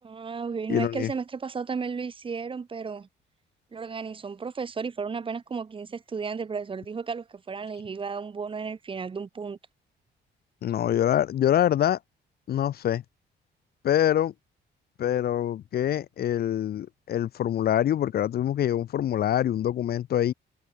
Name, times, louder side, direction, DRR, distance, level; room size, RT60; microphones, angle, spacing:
voice 1, 0.0-3.1 3.7-9.6, right 5 dB, 30° right, 3.1 m, -34 dB
voice 2, 0.7-1.1 10.6-12.0 12.5-13.0 13.8-14.3 15.0-20.3, left 11 dB, 60° left, 1.5 m, -25 dB
cardioid pair, 145°, 18 cm